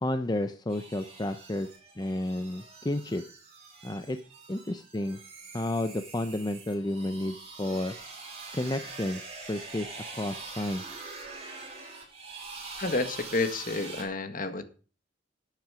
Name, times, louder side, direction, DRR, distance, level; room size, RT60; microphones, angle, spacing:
voice 1, 0.0-1.7 2.0-3.2 3.8-4.2 4.5-5.2 5.5-8.0 8.5-9.2 9.5-10.8, left 1 dB, 20° left, 0.7 m, -31 dB
sound 1, 0.7-14.0, right 3 dB, 35° right, 6.5 m, -44 dB
voice 2, 12.8-14.6, left 3 dB, 45° left, 1.7 m, -30 dB
13.5 x 9.1 x 5.0 m
head